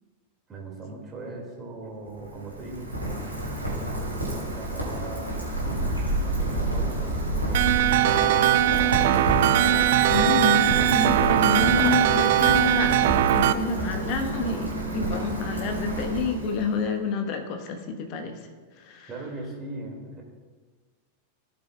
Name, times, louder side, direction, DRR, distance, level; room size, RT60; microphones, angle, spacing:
voice 1, 0.5-3.9 4.3-5.3 5.8-8.3 19.1-20.2, right 2 dB, 25° right, -1 dB, 2.2 m, -40 dB
Rain, 2.0-16.8, right 1 dB, 90° left, 2.6 m, -29 dB
sound 1, 7.5-13.5, right 12 dB, 55° right, 0.3 m, -20 dB
voice 2, 10.1-13.0 13.3-18.3 18.8-19.1, left 4 dB, 40° left, 5 dB, 1.2 m, -29 dB
16.5 x 6.8 x 2.3 m, 1.5 s
figure-of-eight pair, 90°, 0 cm